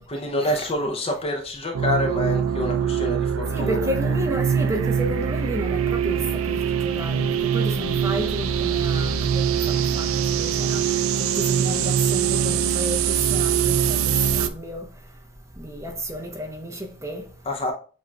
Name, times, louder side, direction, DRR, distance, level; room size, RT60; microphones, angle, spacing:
voice 1, 0.0-4.2 17.5-17.7, left 1 dB, 25° left, 0.5 m, -27 dB
sound 1, 1.7-14.5, right 8 dB, 70° right, 0.3 m, -23 dB
voice 2, 3.5-10.8 11.2-14.9 15.6-17.3, equal, 15° right, 0.7 m, -32 dB
7.2 x 2.9 x 2.2 m
head